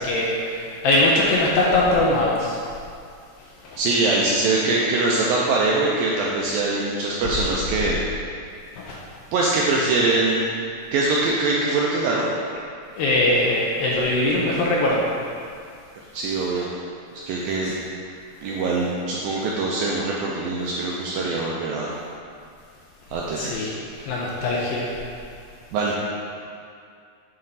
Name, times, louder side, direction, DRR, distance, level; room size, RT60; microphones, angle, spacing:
voice 1, 0.0-2.6 3.6-3.8 8.8-9.0 13.0-15.1 17.6-17.7 23.4-24.9, left 2 dB, 80° left, -4 dB, 2.2 m, -21 dB
voice 2, 3.8-8.0 9.3-10.6 10.9-12.3 16.1-16.7 17.2-17.7 18.4-21.9 23.1-23.7 25.7-25.9, right 3 dB, 80° right, -4 dB, 2.1 m, -23 dB
9.6 x 4.3 x 4.0 m, 2.3 s
omnidirectional pair, 4.8 m